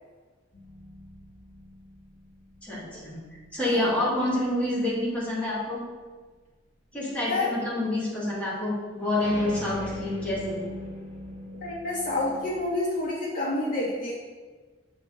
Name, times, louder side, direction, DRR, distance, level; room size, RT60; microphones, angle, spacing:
sound 1, 0.5-3.5 9.2-12.8, left 1 dB, 75° left, 2.2 m, -40 dB
voice 1, 2.6-3.2 3.5-5.8 6.9-10.6, left 1 dB, 5° left, -7 dB, 2.6 m, -28 dB
voice 2, 11.6-14.1, left 2 dB, 50° left, -6 dB, 2.3 m, -28 dB
7.1 x 4.3 x 6.6 m, 1.4 s
head